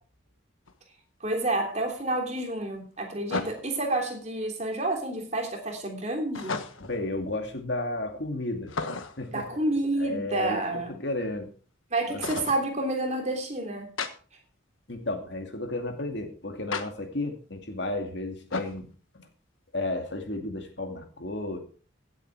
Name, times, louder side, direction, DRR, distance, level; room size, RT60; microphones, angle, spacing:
sound 1, 0.7-0.8 3.3-3.9 6.3-7.0 8.7-9.3 12.2-12.6 14.0-14.1 16.7-16.9 18.5-18.8, left 4 dB, 85° left, 1.4 m, -33 dB
voice 1, 1.2-6.6 9.3-11.0 11.9-13.9, right 2 dB, 35° right, 2 dB, 3.2 m, -29 dB
voice 2, 6.8-8.7 9.2-9.4 10.0-10.6 11.0-11.5 12.1-12.2 14.9-18.9 19.1-19.3 19.7-21.6, left 2 dB, 60° left, 5 dB, 2.4 m, -33 dB
17.0 x 8.1 x 4.7 m, 0.41 s
head